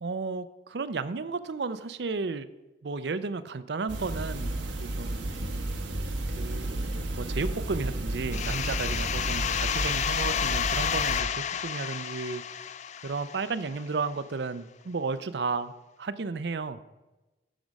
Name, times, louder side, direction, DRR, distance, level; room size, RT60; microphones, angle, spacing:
voice 1, 0.0-2.5 2.8-5.3 6.4-12.4 13.0-15.7 16.0-16.8, right 4 dB, 65° right, 13 dB, 0.5 m, -33 dB
sound 1, 3.9-11.2, right 1 dB, 90° right, 1.3 m, -32 dB
sound 2, 8.3-13.8, left 8 dB, 40° left, 0.3 m, -31 dB
11.5 x 6.1 x 5.2 m, 1.1 s
head